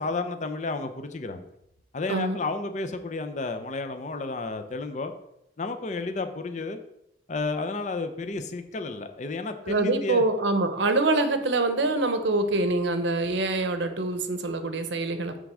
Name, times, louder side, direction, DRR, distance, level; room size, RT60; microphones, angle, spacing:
voice 1, 0.0-1.5 1.9-5.1 5.6-6.8 7.3-10.2, left 3 dB, 40° left, 8 dB, 0.5 m, -32 dB
voice 2, 9.7-15.4, right 2 dB, 70° right, 8 dB, 0.8 m, -25 dB
7.5 x 3.5 x 6.1 m, 0.83 s
head